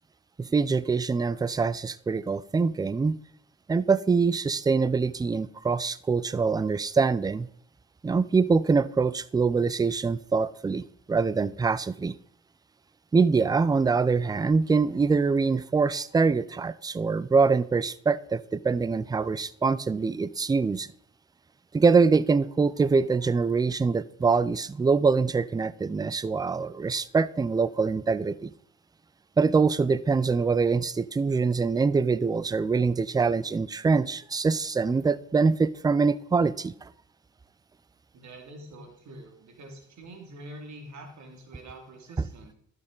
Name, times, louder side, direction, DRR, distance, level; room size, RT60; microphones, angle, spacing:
voice 1, 0.4-3.2 3.7-7.5 8.0-12.2 13.1-20.9 21.7-28.5 29.4-36.9, right 4 dB, 15° right, 0.3 m, -24 dB
voice 2, 38.1-42.5, right 1 dB, 70° right, 2.4 m, -45 dB
11.5 x 6.6 x 3.8 m
cardioid pair, 90°, 30 cm